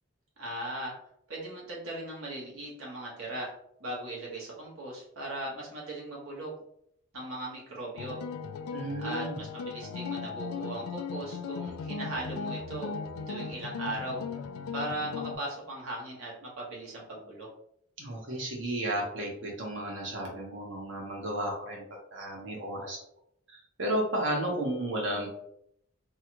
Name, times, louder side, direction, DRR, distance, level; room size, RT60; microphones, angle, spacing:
voice 1, 0.4-0.9 1.3-3.5 3.8-6.5 7.1-8.2 9.0-12.9 13.3-14.2 14.7-17.5, right 1 dB, 80° right, -4 dB, 1.2 m, -38 dB
sound 1, 8.0-15.4, left 5 dB, 90° left, 0.3 m, -37 dB
voice 2, 8.7-9.4 18.0-21.8 22.1-23.0 23.5-25.3, right 1 dB, 60° right, -2 dB, 1.1 m, -33 dB
3.4 x 2.2 x 2.9 m, 0.71 s
head